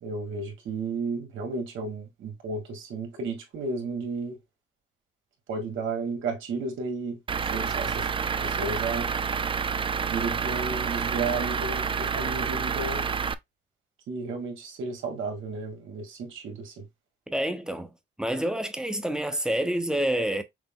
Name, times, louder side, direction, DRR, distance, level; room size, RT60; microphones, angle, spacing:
voice 1, 0.0-4.4 5.5-7.2 7.5-8.1 8.4-9.1 10.1-13.1 14.1-16.8, right 3 dB, 80° right, 1.9 m, -33 dB
Truck / Idling, 7.3-13.3, right 6 dB, 25° right, 0.4 m, -28 dB
voice 2, 17.3-17.9 18.2-20.4, right 1 dB, 5° right, 0.9 m, -28 dB
6.0 x 2.2 x 3.7 m
cardioid pair, 90°, 20 cm